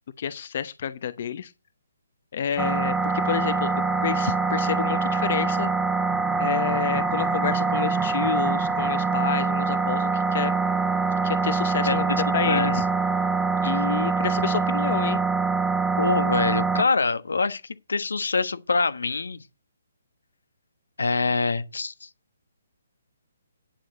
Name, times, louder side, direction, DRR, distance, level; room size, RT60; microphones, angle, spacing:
voice 1, 0.2-1.5 2.3-3.7 4.0-5.7 6.4-10.5 11.2-12.9 13.6-15.2, left 8 dB, 50° left, 0.9 m, -29 dB
sound 1, 2.6-16.8, right 4 dB, 10° right, 0.7 m, -24 dB
Wind instrument woodwind instrument, 2.9-13.8, left 7 dB, 30° left, 1.9 m, -38 dB
voice 2, 11.8-12.8 13.6-13.9 16.0-17.6 17.9-19.4 21.0-22.1, left 4 dB, 85° left, 1.2 m, -25 dB
10.5 x 4.7 x 7.8 m
hypercardioid pair, 150°, 0 cm